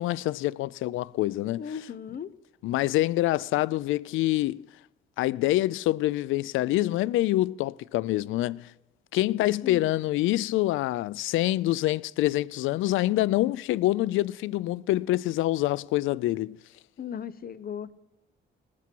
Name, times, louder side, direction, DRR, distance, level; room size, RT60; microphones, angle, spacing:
voice 1, 0.0-1.6 2.6-4.7 5.2-8.7 9.1-16.6, left 16 dB, 85° left, 0.4 m, -26 dB
voice 2, 1.6-2.3 9.6-9.9 17.0-17.9, left 8 dB, 50° left, 0.9 m, -37 dB
19.5 x 8.4 x 4.6 m
cardioid pair, 90°, 20 cm